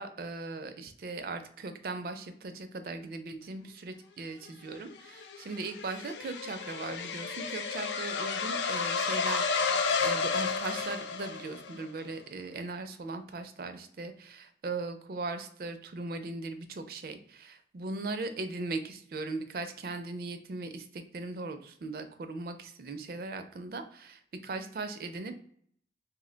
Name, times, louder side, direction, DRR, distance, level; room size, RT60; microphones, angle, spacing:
voice 1, 0.0-25.4, right 3 dB, 55° right, 8 dB, 0.4 m, -39 dB
sound 1, 4.8-11.8, left 5 dB, 80° left, 0.3 m, -32 dB
2.7 x 2.1 x 3.8 m, 0.63 s
head